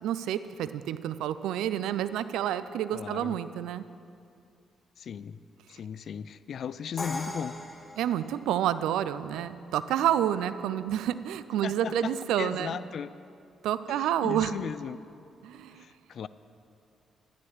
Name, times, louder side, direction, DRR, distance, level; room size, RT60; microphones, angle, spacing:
voice 1, 0.0-3.9 8.0-12.7 13.6-14.5 15.4-15.8, right 11 dB, 75° right, 14 dB, 0.4 m, -29 dB
voice 2, 2.9-3.4 5.0-5.4 5.7-7.5 11.6-12.1 12.4-13.1 13.9-15.0 15.7-16.3, left 7 dB, 60° left, 16 dB, 0.4 m, -36 dB
Crash cymbal, 7.0-8.9, left 2 dB, 30° left, 1.5 m, -39 dB
13.0 x 11.0 x 6.5 m, 2.4 s
hypercardioid pair, 40°, 0 cm